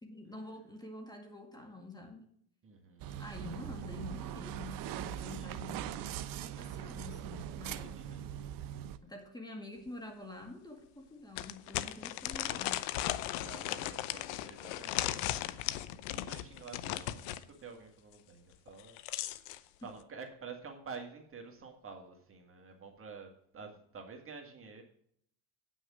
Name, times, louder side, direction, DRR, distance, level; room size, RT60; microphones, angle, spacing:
voice 1, 0.0-2.3 3.2-6.1 6.4-8.3 9.0-12.8 19.8-19.9, left 2 dB, 10° left, 4 dB, 1.9 m, -47 dB
voice 2, 2.6-3.6 5.2-5.7 7.6-8.3 12.2-12.6 13.1-19.0 19.5-24.8, right 5 dB, 30° right, 3 dB, 2.0 m, -50 dB
sound 1, 3.0-9.0, right 11 dB, 50° right, 0.8 m, -41 dB
sound 2, 9.9-10.0 10.4-10.5 11.4-17.4 18.7-19.6, left 14 dB, 70° left, 0.8 m, -37 dB
9.0 x 6.4 x 6.2 m, 0.67 s
supercardioid pair, 110°, 44 cm